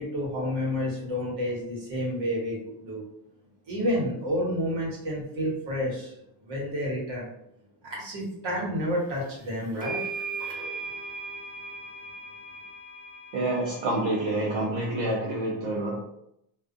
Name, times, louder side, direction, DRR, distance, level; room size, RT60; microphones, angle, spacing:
voice 1, 0.0-3.0 3.7-6.2 6.4-7.3 7.8-10.0, equal, 65° right, -3 dB, 1.3 m, -30 dB
sound 1, 9.2-9.3 9.8-14.6, right 4 dB, 20° right, 1.0 m, -38 dB
voice 2, 13.3-16.0, right 2 dB, 80° right, -4 dB, 0.7 m, -27 dB
2.4 x 2.4 x 2.5 m, 0.76 s
cardioid pair, 110°, 48 cm